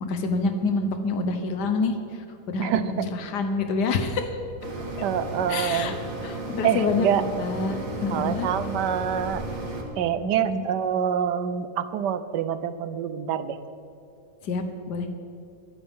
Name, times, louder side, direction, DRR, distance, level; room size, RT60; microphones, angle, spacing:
voice 1, 0.0-4.4 5.5-6.0 6.2-8.5 10.2-10.6 14.4-15.1, left 3 dB, 75° left, 6 dB, 1.6 m, -27 dB
voice 2, 2.6-3.1 5.0-6.0 6.6-7.2 8.1-9.4 10.0-13.6, right 9 dB, 80° right, 12 dB, 1.3 m, -26 dB
sound 1, 4.6-9.8, right 1 dB, 50° right, 2.1 m, -34 dB
22.0 x 12.0 x 3.7 m, 2.8 s
omnidirectional pair, 1.8 m